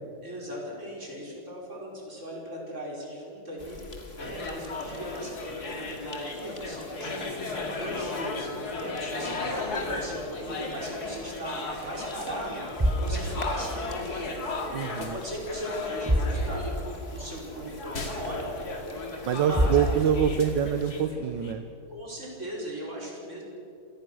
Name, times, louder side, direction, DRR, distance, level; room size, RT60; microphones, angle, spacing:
voice 1, 0.2-3.8 4.1-14.4 14.8-16.6 17.1-18.5 19.4-19.8 21.9-23.4, right 1 dB, 40° right, -3 dB, 5.8 m, -38 dB
sound 1, 3.6-21.0, left 2 dB, 35° left, 2.4 m, -47 dB
sound 2, 4.2-21.5, left 3 dB, 60° left, 2.8 m, -35 dB
sound 3, 9.8-11.5 11.8-12.1 12.6-14.4 14.7-15.4 15.6-15.7 16.0-17.0 17.3-17.4 18.1-18.2 19.2-19.3 19.5-20.5, right 1 dB, 10° right, 1.1 m, -29 dB
voice 2, 14.7-15.1 19.3-21.6, right 8 dB, 80° right, 9 dB, 1.5 m, -25 dB
27.0 x 19.0 x 6.2 m, 2.6 s
omnidirectional pair, 2.0 m